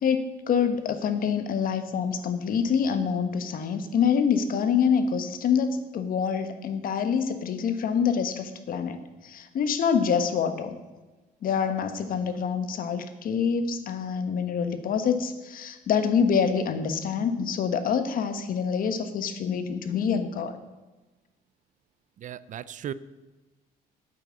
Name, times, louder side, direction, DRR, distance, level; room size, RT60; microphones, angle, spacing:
voice 1, 0.0-9.0 9.2-10.8 11.4-20.6, left 6 dB, 55° left, 9 dB, 1.4 m, -26 dB
voice 2, 22.2-22.9, right 10 dB, 50° right, 17 dB, 0.5 m, -36 dB
9.2 x 8.9 x 8.0 m, 1.2 s
cardioid pair, 110°, 17 cm